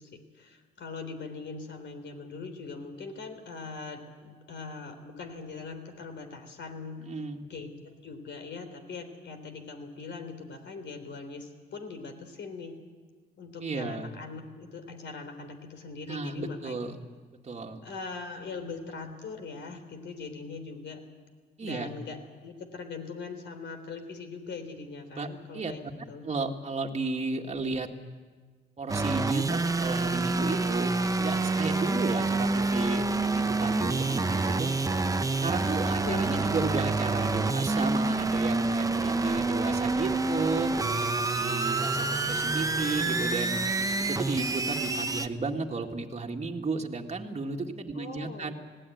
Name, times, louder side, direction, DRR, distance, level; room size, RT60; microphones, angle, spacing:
voice 1, 0.0-7.1 7.4-12.8 13.4-16.9 17.8-21.0 21.6-25.8 26.1-26.3 35.8-36.6 47.9-48.5, left 4 dB, 65° left, 7 dB, 3.6 m, -41 dB
voice 2, 7.0-7.4 13.6-14.1 16.1-17.0 17.4-17.8 21.6-21.9 25.1-25.3 25.5-25.7 26.2-27.9 28.8-34.7 35.4-40.7 41.3-43.6 44.1-48.5, right 3 dB, 35° right, 1 dB, 1.9 m, -33 dB
sound 1, 28.9-45.3, right 3 dB, 15° right, 0.9 m, -27 dB
20.0 x 17.0 x 9.3 m, 1.4 s
cardioid pair, 90°, 20 cm